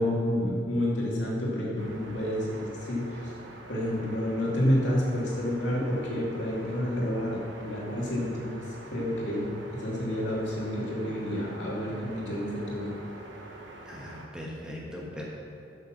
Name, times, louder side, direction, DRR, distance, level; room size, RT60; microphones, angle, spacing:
voice 1, 0.0-3.3 3.7-12.9, left 1 dB, 70° left, -4 dB, 2.5 m, -29 dB
sound 1, 1.8-14.3, right 1 dB, 75° right, 1.2 m, -46 dB
voice 2, 13.8-15.2, left 1 dB, 5° right, -4 dB, 1.3 m, -39 dB
9.3 x 7.0 x 5.9 m, 2.6 s
head